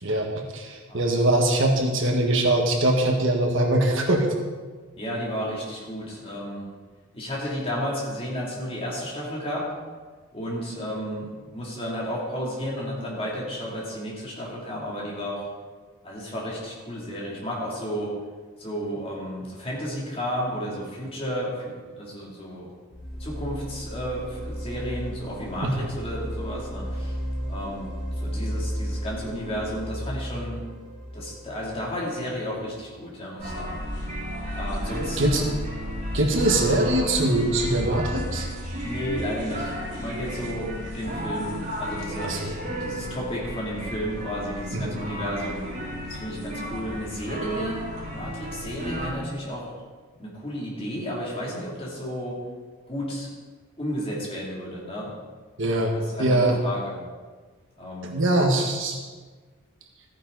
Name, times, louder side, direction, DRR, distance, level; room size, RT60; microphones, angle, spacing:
voice 1, 0.0-4.3 25.6-25.7 35.2-35.4 36.1-38.5 42.2-42.5 44.7-44.9 55.6-55.9 56.2-56.6 58.0-59.1, right 1 dB, 60° right, 2 dB, 1.5 m, -22 dB
voice 2, 5.0-6.7 7.1-9.7 10.3-15.5 16.0-18.1 18.6-22.7 23.2-27.2 27.5-27.9 28.2-30.6 31.1-33.8 34.5-35.5 38.8-39.7 40.0-42.3 42.8-45.6 46.1-47.8 48.1-49.7 50.2-52.4 52.9-53.3 53.8-55.1 56.0-57.0 57.8-58.2, equal, 25° left, -4 dB, 3.0 m, -32 dB
sound 1, 22.9-32.7, equal, ahead, 2.8 m, -34 dB
sound 2, 33.4-49.1, equal, 35° right, 4.0 m, -33 dB
14.5 x 9.7 x 4.1 m, 1.4 s
head